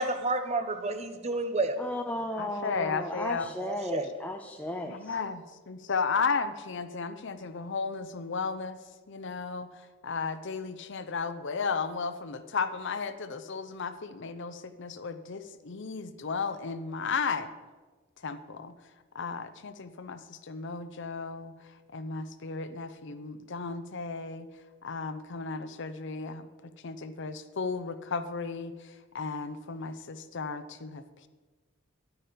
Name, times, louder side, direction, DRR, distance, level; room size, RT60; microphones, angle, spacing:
voice 1, 0.0-1.8 3.6-4.1, right 2 dB, 30° right, 9 dB, 0.7 m, -30 dB
voice 2, 1.8-5.1, left 1 dB, 5° left, 4 dB, 0.5 m, -35 dB
voice 3, 2.4-3.5 4.8-8.8 9.1-17.5 18.2-18.7 19.1-21.5 21.9-24.5 24.8-26.5 26.8-31.3, left 5 dB, 55° left, 10 dB, 0.6 m, -34 dB
11.0 x 8.9 x 5.1 m, 1.3 s
head